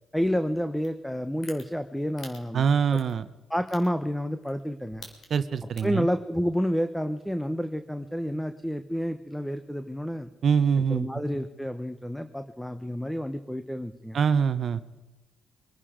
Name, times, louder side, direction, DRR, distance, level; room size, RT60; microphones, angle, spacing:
voice 1, 0.1-2.7 3.5-5.0 5.8-10.3 10.9-14.2, equal, 5° left, 10 dB, 0.9 m, -29 dB
sound 1, 0.8-0.9 1.4-1.6 2.2-2.4 2.9-3.1 3.7-3.9 4.4-4.6 4.9-5.4 5.8-6.0, left 3 dB, 50° left, 3.3 m, -44 dB
voice 2, 2.5-3.2 5.3-6.1 10.4-11.1 14.1-14.8, right 6 dB, 55° right, 12 dB, 0.8 m, -24 dB
23.0 x 11.0 x 5.1 m, 1.1 s
cardioid pair, 90°, 0 cm